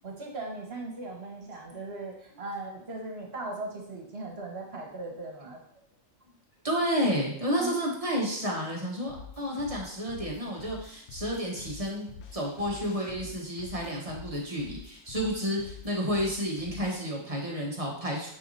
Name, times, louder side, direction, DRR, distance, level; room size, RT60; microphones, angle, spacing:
voice 1, 0.0-5.6 7.6-7.7, right 2 dB, 50° right, 0 dB, 1.7 m, -38 dB
voice 2, 6.6-18.3, equal, 30° right, -2 dB, 1.4 m, -31 dB
sound 1, 9.1-17.1, left 6 dB, 60° left, 0.9 m, -47 dB
9.3 x 5.0 x 2.8 m, 0.66 s
omnidirectional pair, 1.4 m